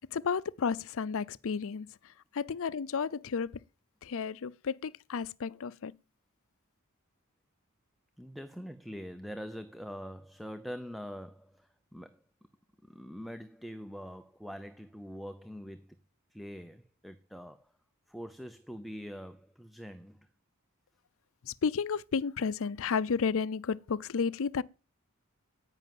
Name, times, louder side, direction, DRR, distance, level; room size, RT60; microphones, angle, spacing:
voice 1, 0.1-3.6 4.0-5.9 21.4-24.6, left 5 dB, 65° left, 0.5 m, -32 dB
voice 2, 8.2-12.2 12.8-16.0 16.3-17.7 18.1-20.3, equal, ahead, 0.6 m, -44 dB
10.5 x 9.1 x 7.6 m
head